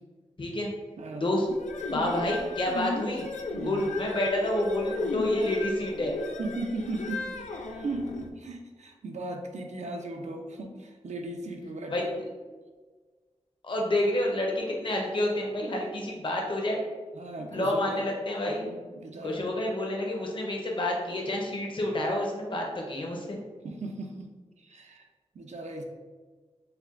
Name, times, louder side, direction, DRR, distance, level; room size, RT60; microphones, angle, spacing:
voice 1, 0.4-0.7 1.2-1.5 1.9-3.3 3.6-6.1 11.9-12.0 13.6-16.8 17.5-18.6 19.2-23.4, left 1 dB, 45° left, -1 dB, 0.8 m, -29 dB
voice 2, 1.0-1.3 3.5-3.9 6.4-7.3 7.7-12.2 17.1-18.1 18.5-19.5 23.6-24.3 24.6-25.0 25.3-25.8, right 2 dB, 75° right, 3 dB, 0.6 m, -37 dB
sound 1, 1.5-8.3, left 3 dB, 90° left, 0.4 m, -36 dB
6.7 x 2.2 x 2.5 m, 1.4 s
wide cardioid pair, 110°, 12 cm